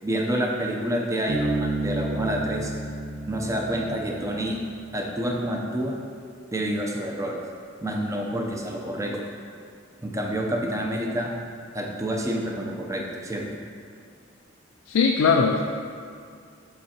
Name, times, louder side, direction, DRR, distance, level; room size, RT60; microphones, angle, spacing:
voice 1, 0.0-2.7 3.3-4.6 4.9-6.0 6.5-7.4 7.8-9.2 10.0-11.3 11.7-13.5, right 1 dB, 15° right, 0 dB, 0.6 m, -28 dB
Bass guitar, 1.3-4.8, right 2 dB, 80° right, 1.2 m, -31 dB
voice 2, 14.9-15.6, left 5 dB, 85° left, 2 dB, 0.4 m, -20 dB
7.1 x 6.1 x 2.9 m, 2.2 s
head